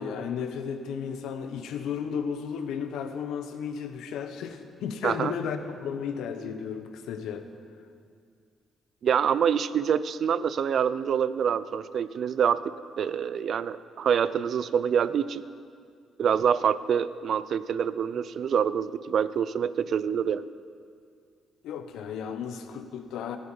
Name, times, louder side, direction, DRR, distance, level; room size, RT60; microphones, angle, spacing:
voice 1, 0.0-7.5 21.6-23.4, left 7 dB, 85° left, 7 dB, 1.2 m, -34 dB
voice 2, 9.0-15.4 16.2-20.5, right 8 dB, 60° right, 16 dB, 0.5 m, -26 dB
23.5 x 9.0 x 5.0 m, 2.2 s
cardioid pair, 90°, 0 cm